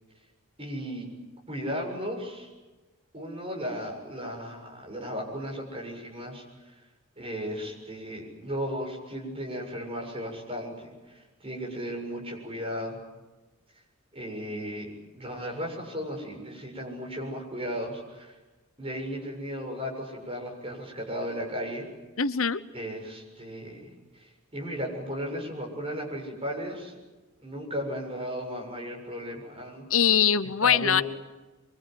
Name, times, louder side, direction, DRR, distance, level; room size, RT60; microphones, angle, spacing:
voice 1, 0.6-1.1 1.5-2.5 3.1-6.8 7.2-13.0 14.1-18.4 18.8-21.8 22.7-27.0 27.4-29.8 30.6-31.0, equal, 25° right, 0 dB, 7.4 m, -35 dB
voice 2, 22.2-22.6 29.9-31.0, left 7 dB, 70° left, 13 dB, 0.9 m, -22 dB
24.5 x 24.5 x 9.5 m, 1.2 s
head